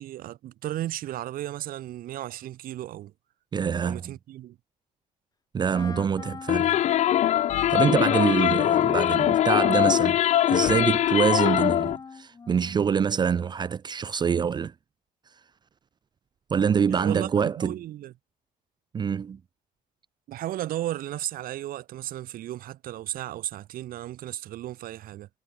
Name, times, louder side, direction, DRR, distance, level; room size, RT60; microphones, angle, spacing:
voice 1, 0.0-3.1 3.8-4.6 16.9-18.1 20.3-25.3, right 14 dB, 70° right, 3.8 m, -34 dB
voice 2, 3.5-4.1 5.5-6.8 7.7-10.2 10.5-14.7 16.5-17.8 18.9-19.4, right 7 dB, 30° right, 0.5 m, -25 dB
Wind instrument woodwind instrument, 5.7-12.9, left 5 dB, 25° left, 2.2 m, -40 dB
sound 1, 6.5-12.0, left 12 dB, 50° left, 0.4 m, -22 dB
cardioid pair, 125°, 15 cm